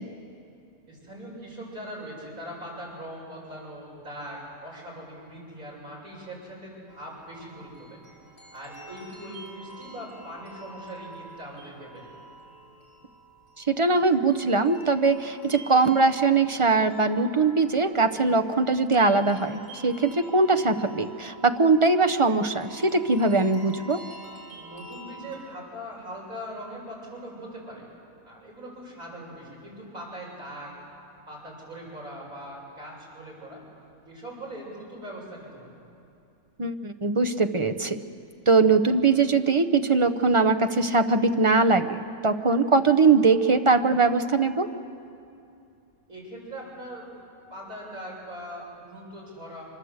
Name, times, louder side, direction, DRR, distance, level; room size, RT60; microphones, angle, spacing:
voice 1, 0.9-8.0 8.5-12.1 24.6-27.9 28.2-30.7 31.3-33.6 34.0-35.7 46.1-47.1 47.5-49.6, equal, 75° right, -4 dB, 7.9 m, -41 dB
sound 1, 6.9-25.4, right 2 dB, 70° left, 4.9 m, -47 dB
voice 2, 13.6-24.0 36.6-38.0 38.5-44.7, right 3 dB, 30° right, 8 dB, 0.6 m, -21 dB
25.5 x 23.0 x 8.1 m, 2.6 s
omnidirectional pair, 1.5 m